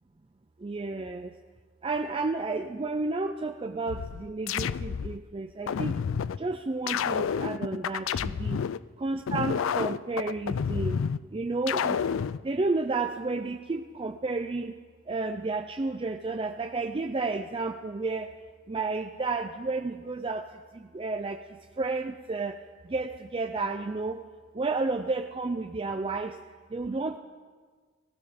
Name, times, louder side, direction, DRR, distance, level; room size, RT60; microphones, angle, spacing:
voice 1, 0.6-1.3 1.8-6.0 6.4-8.6 9.0-11.0 11.3-12.0 12.4-14.8 15.1-18.3 18.7-20.5 20.7-21.4 21.8-22.6 22.9-24.2 24.5-26.4 26.7-27.2, right 3 dB, 25° right, 7 dB, 0.4 m, -31 dB
sound 1, 3.9-5.2 5.7-6.4 6.9-8.8 9.3-11.2 11.7-12.4, left 7 dB, 80° left, 0.4 m, -29 dB
17.5 x 16.0 x 5.1 m, 1.5 s
head